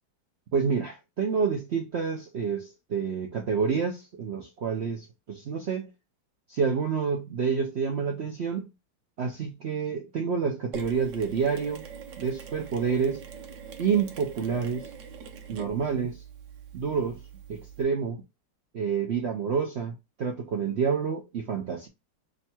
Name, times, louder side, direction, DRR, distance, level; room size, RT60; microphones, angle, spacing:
voice 1, 0.5-5.9 6.5-8.7 9.2-11.9 12.2-13.2 13.8-14.9 15.5-16.2 16.7-17.2 17.5-18.2 18.7-21.9, right 6 dB, 90° right, 0.5 m, -28 dB
Mechanisms, 10.7-17.8, right 6 dB, 60° right, 0.9 m, -43 dB
3.7 x 2.3 x 4.2 m
omnidirectional pair, 2.0 m